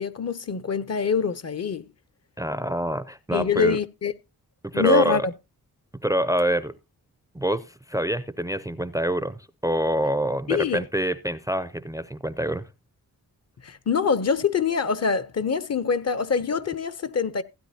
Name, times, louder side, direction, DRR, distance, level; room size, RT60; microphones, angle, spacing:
voice 1, 0.0-1.9 3.3-4.1 4.7-5.3 10.5-10.9 13.6-17.4, left 5 dB, 45° left, 0.7 m, -24 dB
voice 2, 2.4-3.8 4.6-5.3 6.0-6.7 7.3-12.7, right 1 dB, 10° right, 0.5 m, -26 dB
16.0 x 9.2 x 2.7 m
cardioid pair, 90°, 36 cm